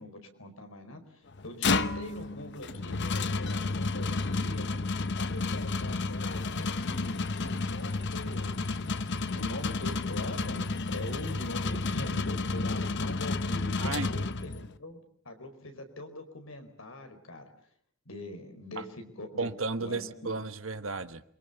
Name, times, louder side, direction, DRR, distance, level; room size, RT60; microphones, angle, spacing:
voice 1, 0.0-8.6 9.4-17.4 18.0-19.5 19.8-20.3, left 1 dB, 75° left, 6 dB, 4.8 m, -43 dB
sound 1, 1.3-14.8, left 3 dB, 60° left, 1.0 m, -31 dB
voice 2, 13.8-14.1 18.8-18.9 19.4-21.2, right 3 dB, 70° right, 9 dB, 1.4 m, -33 dB
29.0 x 23.5 x 6.9 m, 0.64 s
head